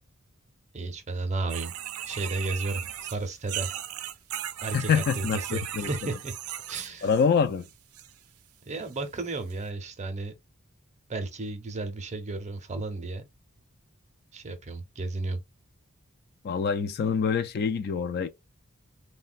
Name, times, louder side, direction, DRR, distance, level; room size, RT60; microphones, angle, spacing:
voice 1, 0.7-1.7 2.1-3.7 4.6-6.3 6.7-7.1 8.7-10.3 11.1-13.2 14.3-15.4, right 3 dB, 35° right, 0.6 m, -33 dB
sound 1, 1.5-7.3 7.6-8.1 8.9-9.0 9.5-9.6, right 11 dB, 85° right, 0.4 m, -37 dB
voice 2, 4.7-5.9 7.0-7.7 16.4-18.3, left 6 dB, 50° left, 0.3 m, -25 dB
3.2 x 2.1 x 2.4 m
head